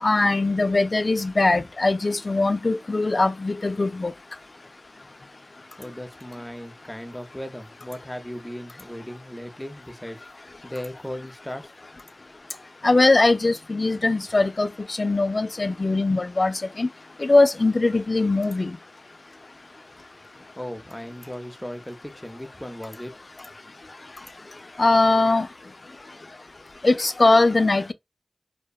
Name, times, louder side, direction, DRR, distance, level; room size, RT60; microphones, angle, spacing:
voice 1, 0.0-4.1 12.8-16.9 17.2-18.8 24.8-25.5 26.8-27.9, left 2 dB, 60° left, 0.3 m, -21 dB
voice 2, 5.8-11.7 20.6-23.1, equal, 15° left, 0.6 m, -37 dB
2.7 x 2.2 x 2.2 m
cardioid pair, 40°, 0 cm